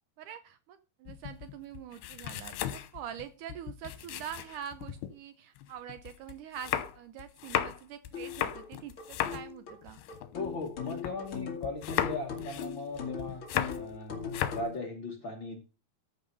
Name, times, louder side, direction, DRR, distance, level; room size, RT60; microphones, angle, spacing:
voice 1, 0.2-10.0, right 9 dB, 80° right, 11 dB, 1.8 m, -44 dB
sound 1, 1.1-5.1 5.6-11.4 11.6-14.0 14.2-14.7, left 11 dB, 85° left, 2.9 m, -36 dB
sound 2, 8.1-14.8, left 6 dB, 40° left, 2.2 m, -40 dB
voice 2, 10.3-13.4 13.7-14.2 14.5-15.6, left 3 dB, 60° left, 2 dB, 1.2 m, -38 dB
14.0 x 5.4 x 5.4 m, 0.35 s
omnidirectional pair, 4.5 m